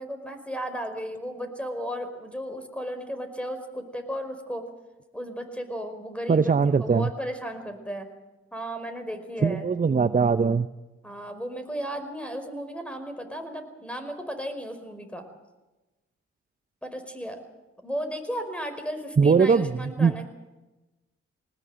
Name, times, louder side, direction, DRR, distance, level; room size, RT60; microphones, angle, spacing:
voice 1, 0.0-4.6 5.1-6.5 6.8-8.1 8.5-9.7 11.0-15.2 16.8-17.4 17.8-20.2, equal, 5° left, 7 dB, 5.1 m, -34 dB
voice 2, 6.3-7.1 9.4-10.7 19.2-20.2, right 5 dB, 25° right, 13 dB, 0.7 m, -21 dB
19.5 x 19.0 x 7.9 m, 1.1 s
hypercardioid pair, 45°, 30 cm